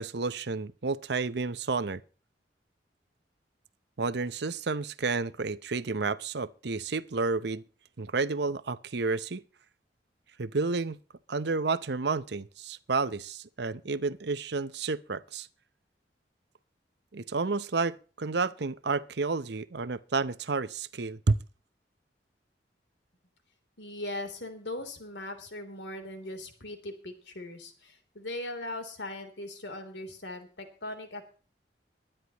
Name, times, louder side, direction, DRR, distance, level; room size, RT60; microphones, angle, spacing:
voice 1, 0.0-2.0 4.0-7.6 8.0-9.4 10.4-11.0 11.3-15.5 17.1-21.4, right 4 dB, 65° right, 0.8 m, -30 dB
voice 2, 23.8-31.4, left 1 dB, 75° left, 3.3 m, -39 dB
22.5 x 10.0 x 3.0 m
head